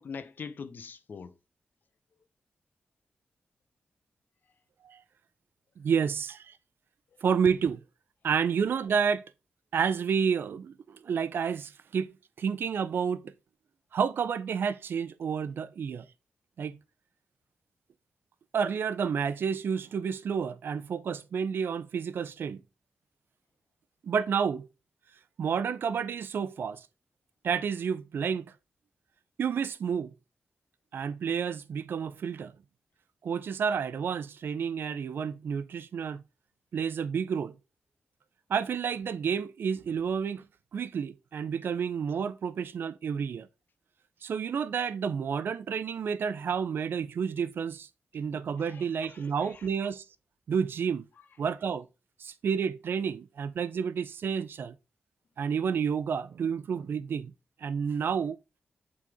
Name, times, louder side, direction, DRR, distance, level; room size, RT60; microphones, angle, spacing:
voice 1, 0.0-1.3 48.6-49.7, left 5 dB, 60° left, 0.7 m, -43 dB
voice 2, 5.8-6.6 7.2-7.8 8.2-9.2 9.7-13.3 13.9-16.1 16.6-16.8 18.5-22.6 24.0-24.7 25.4-26.9 27.4-28.5 29.4-30.1 30.9-32.5 33.2-36.2 36.7-37.6 38.5-40.5 40.7-43.5 44.2-47.9 48.1-50.0 50.5-51.1 51.4-51.9 52.2-54.7 55.4-57.3 57.6-58.4, right 6 dB, 75° right, 0.5 m, -30 dB
7.6 x 4.1 x 3.5 m
wide cardioid pair, 110°, 4 cm